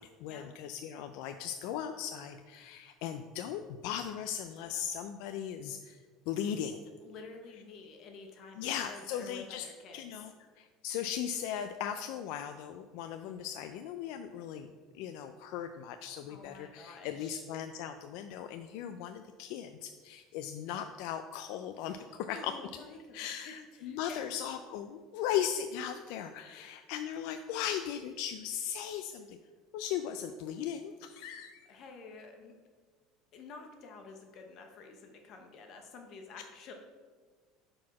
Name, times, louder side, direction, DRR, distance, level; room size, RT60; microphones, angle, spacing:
voice 1, 0.0-6.8 8.6-9.6 9.9-14.7 14.9-22.5 23.1-29.4 29.7-31.7, left 9 dB, 65° left, 8 dB, 0.4 m, -38 dB
voice 2, 7.0-10.1 16.3-17.4 21.8-24.2 26.4-26.8 31.7-32.5 33.3-36.7, left 4 dB, 40° left, 3 dB, 0.9 m, -50 dB
6.2 x 4.8 x 5.9 m, 1.5 s
cardioid pair, 160°, 0 cm